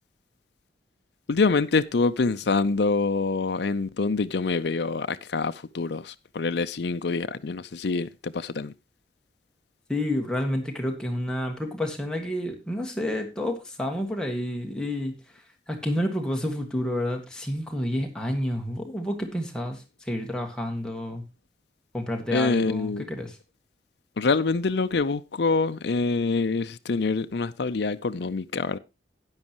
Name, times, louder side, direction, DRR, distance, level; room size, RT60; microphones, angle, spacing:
voice 1, 1.3-8.7 22.3-23.0 24.2-28.8, left 4 dB, 70° left, 0.5 m, -25 dB
voice 2, 9.9-21.2 21.9-23.4, left 1 dB, 5° left, 1.7 m, -30 dB
12.5 x 9.8 x 3.0 m
head